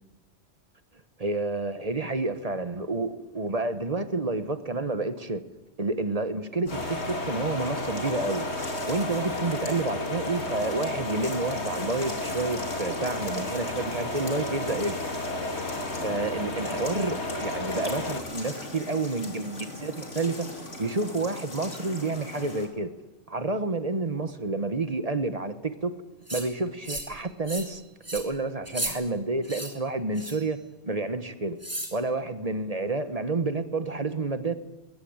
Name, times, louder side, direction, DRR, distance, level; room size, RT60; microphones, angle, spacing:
voice 1, 1.2-5.4 5.8-8.4 8.9-15.0 16.0-20.5 20.8-22.9 23.3-26.0 26.3-27.8 28.1-30.6 30.8-31.6 31.9-34.5, right 3 dB, 35° right, 1.1 m, -29 dB
sound 1, 6.7-22.7, left 1 dB, 80° left, 3.6 m, -40 dB
sound 2, 6.7-18.2, left 2 dB, 65° left, 2.6 m, -33 dB
sound 3, 26.3-26.5 26.8-27.2 27.5-27.7 28.0-28.2 28.7-28.9 29.4-29.7 30.2-30.5 31.6-31.9, right 1 dB, 10° right, 3.4 m, -34 dB
21.5 x 19.5 x 8.8 m
omnidirectional pair, 1.2 m